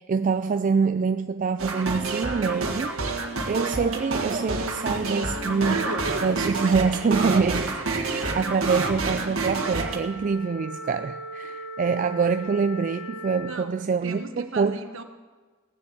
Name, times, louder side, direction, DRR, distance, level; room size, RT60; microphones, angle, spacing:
voice 1, 0.0-3.0 3.5-5.9 6.2-14.8, right 5 dB, 40° right, 0.3 m, -25 dB
sound 1, 1.6-10.0, right 3 dB, 85° right, 1.6 m, -28 dB
Wind instrument woodwind instrument, 9.4-13.7, right 1 dB, 85° left, 2.2 m, -39 dB
voice 2, 13.4-15.0, right 3 dB, 65° right, 1.2 m, -38 dB
18.5 x 7.1 x 7.8 m
head